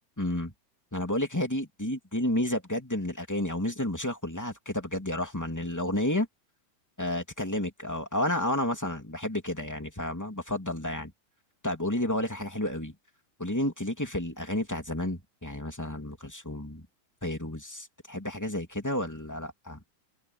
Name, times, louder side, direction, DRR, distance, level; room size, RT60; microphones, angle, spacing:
voice 1, 0.2-0.5 0.9-6.3 7.0-11.1 11.6-12.9 13.4-16.8 17.2-19.8, left 1 dB, 5° left, 2.2 m, -31 dB
omnidirectional pair, 4.3 m